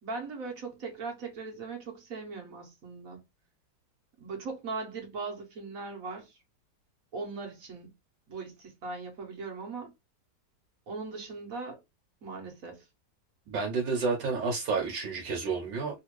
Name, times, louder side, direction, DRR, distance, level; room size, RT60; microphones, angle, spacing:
voice 1, 0.0-3.2 4.2-6.4 7.1-7.9 8.3-9.9 10.9-11.8 12.2-12.8, right 4 dB, 55° right, 1.4 m, -39 dB
voice 2, 13.5-16.0, right 4 dB, 75° right, 1.5 m, -30 dB
3.4 x 2.5 x 3.0 m
omnidirectional pair, 2.0 m